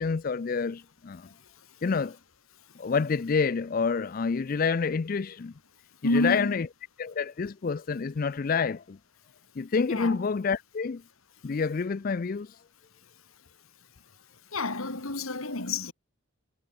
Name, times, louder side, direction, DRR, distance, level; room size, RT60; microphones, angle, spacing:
voice 1, 0.0-1.3 1.8-2.2 2.8-5.5 6.1-6.7 7.0-9.0 9.6-11.0 11.4-12.6, left 5 dB, 45° left, 0.4 m, -28 dB
voice 2, 6.0-6.5 9.9-10.2 14.5-15.9, left 2 dB, 90° left, 3.1 m, -29 dB
head